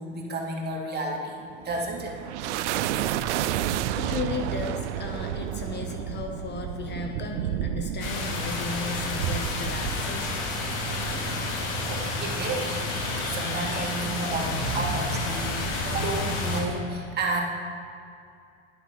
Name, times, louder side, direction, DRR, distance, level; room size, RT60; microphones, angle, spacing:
voice 1, 0.0-2.5 11.9-12.8 13.2-17.4, right 2 dB, 30° right, -2 dB, 2.4 m, -32 dB
sound 1, 1.5-12.3, right 11 dB, 85° right, 0.5 m, -31 dB
voice 2, 3.9-10.4, left 5 dB, 30° left, 4 dB, 1.0 m, -35 dB
sound 2, 8.0-16.6, left 2 dB, 75° left, 2.8 m, -30 dB
11.0 x 7.6 x 5.3 m, 2.4 s
supercardioid pair, 110°, 34 cm